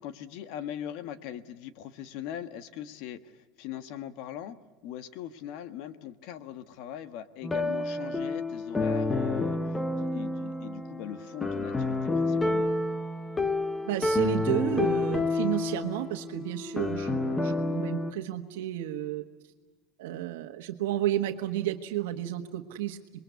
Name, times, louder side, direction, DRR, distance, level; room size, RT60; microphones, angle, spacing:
voice 1, 0.0-3.3 3.6-4.6 4.8-9.6 10.0-12.7, left 10 dB, 55° left, 12 dB, 1.4 m, -40 dB
sound 1, 7.4-18.1, left 2 dB, 10° left, 0.9 m, -29 dB
voice 2, 13.8-19.2 20.0-23.0, right 13 dB, 90° right, 4 dB, 1.4 m, -32 dB
27.0 x 21.5 x 8.3 m, 1.3 s
cardioid pair, 165°, 0 cm